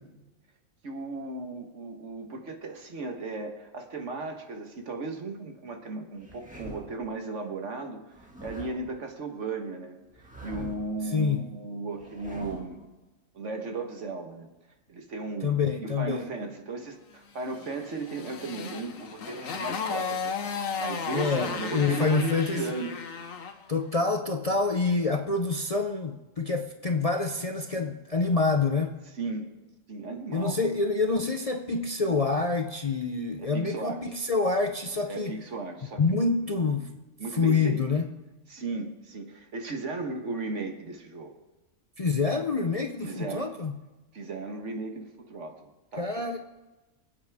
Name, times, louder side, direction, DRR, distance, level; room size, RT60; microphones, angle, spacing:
voice 1, 0.8-12.8 13.3-14.5 14.9-23.0 29.1-29.5 29.9-30.6 33.4-34.1 35.1-36.4 37.2-37.8 38.5-41.3 43.0-43.5 44.1-46.3, right 3 dB, 65° right, 4 dB, 1.7 m, -36 dB
sound 1, 6.2-7.0 8.1-8.9 10.1-11.0 11.9-12.8, right 1 dB, 5° right, 2.0 m, -44 dB
voice 2, 11.1-11.4 15.4-16.3 21.1-22.7 23.7-29.0 30.3-35.3 36.0-37.0 37.3-38.1 42.0-43.7 46.0-46.4, left 4 dB, 35° left, 4 dB, 0.6 m, -27 dB
Motorcycle, 17.6-23.6, left 5 dB, 90° left, 1.4 m, -34 dB
25.0 x 8.8 x 3.5 m, 1.1 s
omnidirectional pair, 1.3 m